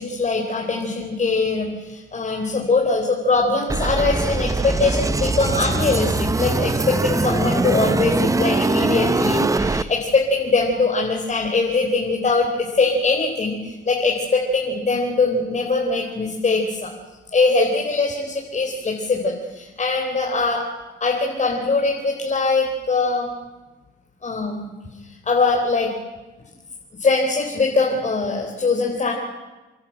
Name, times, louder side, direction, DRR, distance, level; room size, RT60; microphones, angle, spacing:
voice 1, 0.0-16.9 17.3-20.7 21.0-23.3 24.2-24.7 25.0-25.9 26.9-29.1, left 3 dB, 35° left, -1 dB, 4.1 m, -22 dB
sound 1, 3.7-9.8, right 3 dB, 15° right, 0.7 m, -22 dB
29.0 x 11.5 x 8.8 m, 1.2 s
cardioid pair, 90°, 20 cm